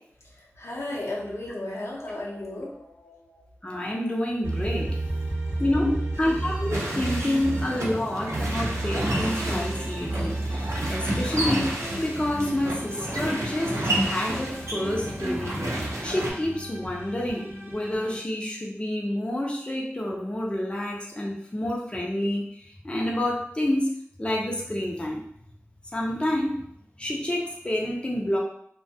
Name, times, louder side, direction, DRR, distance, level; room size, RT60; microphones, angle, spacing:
voice 1, 0.6-3.8 5.4-5.5 5.8-6.0 7.2-7.5 8.0-8.1, left 2 dB, 65° left, -3 dB, 0.6 m, -34 dB
voice 2, 3.6-5.0 5.6-5.9 6.2-15.6 16.0-22.4 22.8-23.9 24.2-25.2 25.9-26.6 27.0-28.4, left 1 dB, 20° left, -2 dB, 0.5 m, -28 dB
sound 1, 4.4-7.9 8.3-13.9 14.3-18.2, right 2 dB, 50° right, 0.9 m, -33 dB
sound 2, 6.7-16.3, right 1 dB, 75° right, 0.6 m, -30 dB
2.3 x 2.1 x 2.6 m, 0.67 s
wide cardioid pair, 45°, 5 cm